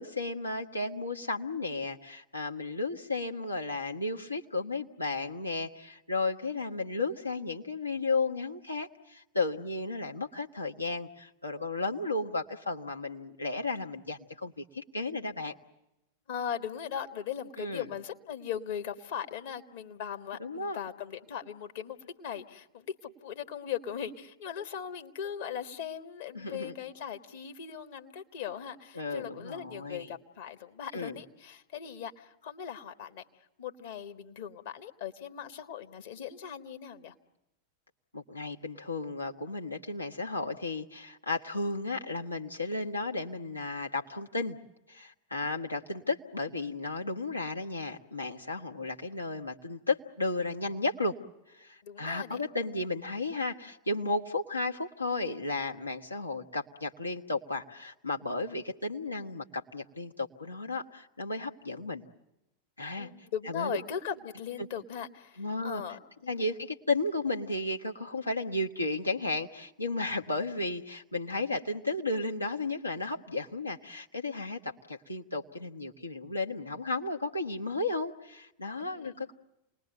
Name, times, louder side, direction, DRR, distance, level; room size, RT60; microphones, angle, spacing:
voice 1, 0.0-15.5 17.6-17.9 20.4-20.8 26.3-26.7 28.9-30.1 30.9-31.2 38.1-44.6 44.9-51.1 51.6-62.0 62.8-63.1 63.5-63.8 64.6-64.7 65.4-65.8 66.3-79.4, left 2 dB, 85° left, 1 dB, 1.4 m, -34 dB
voice 2, 16.3-33.2 33.6-37.1 45.4-45.5 51.8-52.4 63.0-66.3 79.0-79.1, left 8 dB, 55° left, 6 dB, 1.6 m, -39 dB
28.5 x 20.5 x 7.9 m, 0.92 s
figure-of-eight pair, 90°, 0 cm